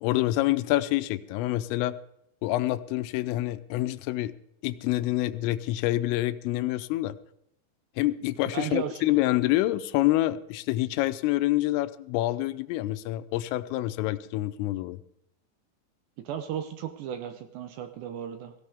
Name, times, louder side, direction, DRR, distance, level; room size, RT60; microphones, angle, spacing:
voice 1, 0.0-2.0 2.4-4.3 4.6-7.2 8.0-15.0, left 16 dB, 85° left, 13 dB, 3.2 m, -27 dB
voice 2, 8.5-9.0 16.2-18.5, right 9 dB, 75° right, 8 dB, 2.7 m, -35 dB
17.5 x 16.5 x 3.5 m, 0.79 s
omnidirectional pair, 5.8 m